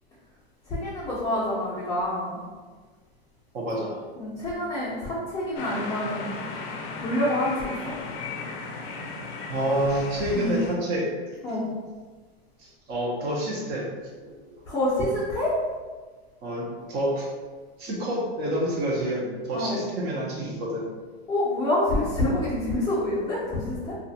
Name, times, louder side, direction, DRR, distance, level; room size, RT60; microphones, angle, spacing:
voice 1, 0.7-2.4 4.2-6.4 7.0-7.9 10.3-10.6 11.4-11.6 14.7-15.5 19.5-19.8 21.3-23.9, left 1 dB, 10° left, -11 dB, 0.6 m, -27 dB
voice 2, 3.5-4.0 9.5-11.6 12.6-13.9 14.2-14.5 16.4-17.3 17.8-20.9, right 1 dB, 30° right, -3 dB, 0.7 m, -28 dB
sound 1, 5.6-10.8, left 4 dB, 65° left, 0.5 m, -36 dB
2.4 x 2.2 x 2.7 m, 1.4 s
supercardioid pair, 140°, 31 cm